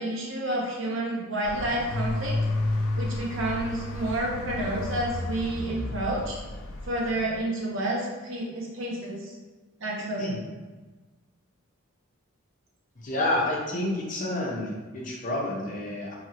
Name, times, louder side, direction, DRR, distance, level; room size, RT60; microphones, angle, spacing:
voice 1, 0.0-2.3 3.0-6.4 6.8-9.3 9.8-10.4, right 1 dB, 65° right, -3 dB, 0.7 m, -30 dB
sound 1, 1.4-7.4, left 2 dB, 75° left, 0.4 m, -31 dB
voice 2, 13.0-16.1, left 1 dB, 35° left, -3 dB, 0.6 m, -29 dB
2.8 x 2.8 x 2.8 m, 1.3 s
head